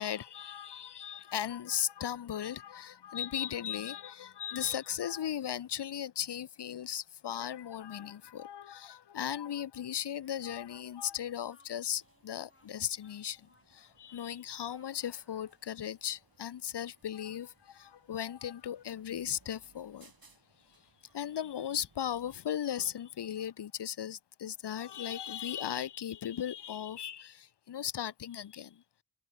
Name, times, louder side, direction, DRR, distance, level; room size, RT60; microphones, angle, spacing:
voice 1, 0.0-20.1 21.1-28.8, left 9 dB, 80° left, 0.7 m, -37 dB
Speech, 10.2-15.5, left 2 dB, 30° left, 6.2 m, -68 dB
sound 1, 11.8-22.4, right 3 dB, 60° right, 6.0 m, -67 dB
wide cardioid pair, 50°, 40 cm